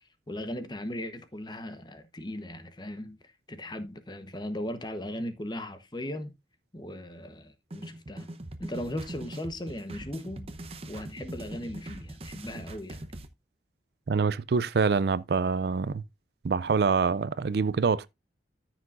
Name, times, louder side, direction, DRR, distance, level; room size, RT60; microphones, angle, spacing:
voice 1, 0.3-6.3 6.7-8.3 8.6-10.5 10.9-13.0, left 1 dB, 25° left, 1.0 m, -38 dB
sound 1, 7.7-13.3, right 1 dB, 30° right, 0.8 m, -42 dB
voice 2, 14.1-16.0 16.4-18.1, right 5 dB, 60° right, 0.4 m, -25 dB
14.0 x 6.1 x 2.5 m
head